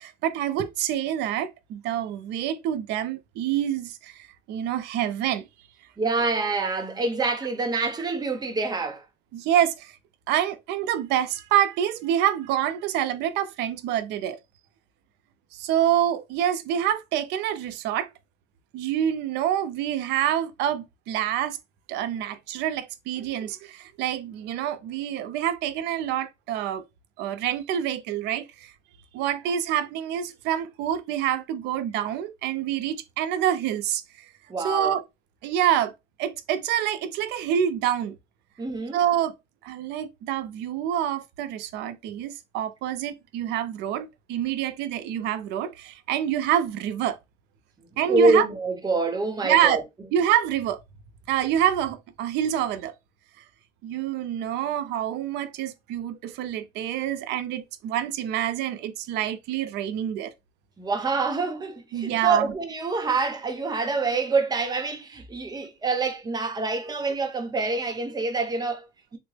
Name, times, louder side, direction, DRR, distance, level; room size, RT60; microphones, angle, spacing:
voice 1, 0.0-5.5 9.3-10.0 10.3-14.4 15.5-18.1 18.7-21.6 21.9-26.8 27.2-28.7 29.1-34.3 34.6-35.0 35.4-35.9 36.2-38.2 38.9-39.3 39.6-47.2 48.0-48.5 49.4-49.8 50.1-50.8 51.3-52.9 53.8-60.3 61.9-62.5, right 10 dB, 90° right, 0.5 m, -26 dB
voice 2, 6.0-9.0 34.5-34.9 38.6-39.0 48.1-49.8 60.8-69.2, right 3 dB, 25° right, 0.8 m, -26 dB
3.6 x 2.0 x 3.2 m
cardioid pair, 110°, 17 cm